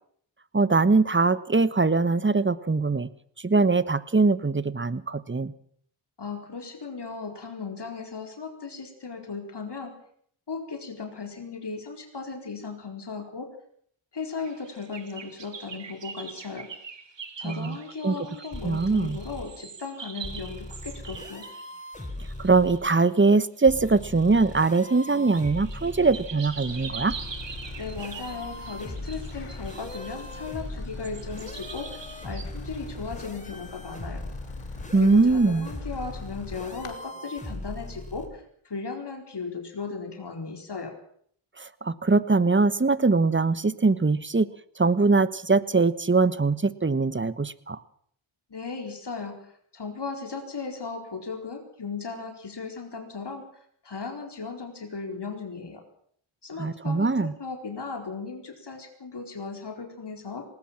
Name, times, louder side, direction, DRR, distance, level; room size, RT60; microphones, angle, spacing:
voice 1, 0.5-3.1 3.4-5.5 17.4-17.8 18.0-18.1 18.6-19.2 22.4-27.1 34.9-35.7 41.6-44.5 44.8-47.8 56.6-57.3, right 3 dB, 25° right, 16 dB, 1.2 m, -22 dB
voice 2, 6.2-10.0 10.5-13.5 14.1-16.7 17.4-21.4 27.8-34.2 35.0-40.9 48.5-53.5 53.8-55.8 56.4-60.5, left 4 dB, 55° left, 4 dB, 4.5 m, -36 dB
sound 1, 14.5-23.2 23.9-32.5, right 5 dB, 60° right, 2.4 m, -43 dB
sound 2, 18.5-19.4 20.2-22.8 23.7-26.3 27.1-38.3, left 1 dB, 15° left, 4.7 m, -40 dB
sound 3, 26.5-36.9, left 6 dB, 75° left, 3.1 m, -43 dB
19.5 x 19.0 x 7.5 m, 0.63 s
cardioid pair, 50°, 50 cm